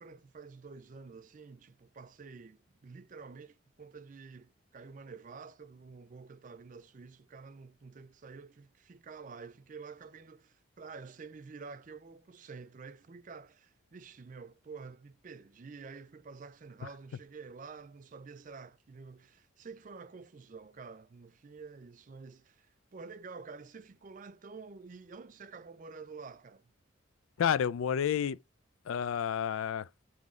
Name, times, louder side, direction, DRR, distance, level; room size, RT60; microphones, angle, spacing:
voice 1, 0.0-26.7, right 4 dB, 40° right, 0.4 m, -49 dB
voice 2, 27.4-28.4 28.9-29.9, left 8 dB, 85° left, 0.3 m, -30 dB
3.8 x 3.0 x 3.7 m
head